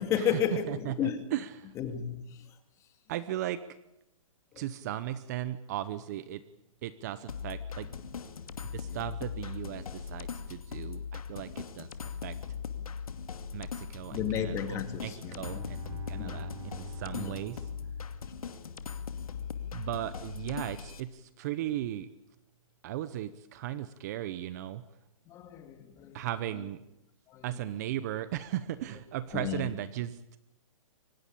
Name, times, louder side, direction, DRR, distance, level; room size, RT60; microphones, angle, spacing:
voice 1, 0.0-1.2 1.8-2.4 4.5-4.6 14.1-15.6 16.1-16.3 17.1-17.4 25.3-26.2 27.3-27.4 29.3-29.7, left 9 dB, 15° left, 8 dB, 2.2 m, -33 dB
voice 2, 0.7-1.7 3.1-3.6 4.6-6.4 6.8-7.9 8.7-11.9 12.2-12.4 13.5-17.6 19.7-22.1 22.8-24.8 26.1-26.8 27.4-30.2, right 13 dB, 30° right, 15 dB, 0.9 m, -37 dB
sound 1, 7.3-21.0, left 6 dB, 85° left, 2.4 m, -39 dB
Bowed string instrument, 15.2-18.9, right 9 dB, 80° right, 4.6 m, -48 dB
24.0 x 19.5 x 8.7 m, 0.85 s
hypercardioid pair, 165°, 18 cm